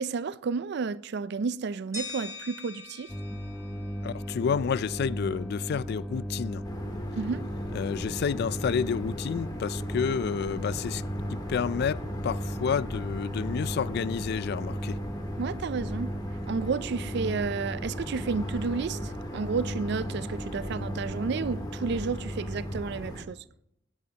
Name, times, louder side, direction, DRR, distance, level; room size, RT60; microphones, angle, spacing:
voice 1, 0.0-3.1 7.2-7.5 15.4-16.1 16.5-23.4, right 5 dB, 60° right, 0.4 m, -31 dB
sound 1, 1.9-4.9, left 3 dB, 15° right, 2.7 m, -43 dB
sound 2, 3.1-22.8, equal, 5° left, 1.2 m, -36 dB
voice 2, 4.0-6.6 7.7-11.0 11.3-15.0, left 6 dB, 55° left, 0.3 m, -30 dB
sound 3, 6.6-23.2, equal, 20° left, 2.0 m, -39 dB
17.0 x 9.3 x 2.9 m
head